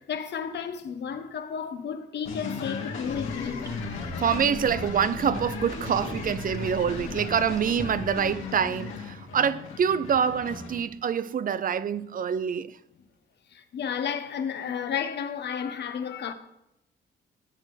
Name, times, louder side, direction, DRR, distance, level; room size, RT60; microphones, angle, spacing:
voice 1, 0.0-3.6 13.5-16.3, left 7 dB, 60° left, 1.1 m, -32 dB
sound 1, 2.2-10.8, left 5 dB, 85° left, 2.0 m, -36 dB
sound 2, 3.0-8.2, equal, 15° right, 1.6 m, -42 dB
voice 2, 4.2-12.8, right 7 dB, 45° right, 0.5 m, -26 dB
16.5 x 7.5 x 3.3 m
cardioid pair, 90°, 20 cm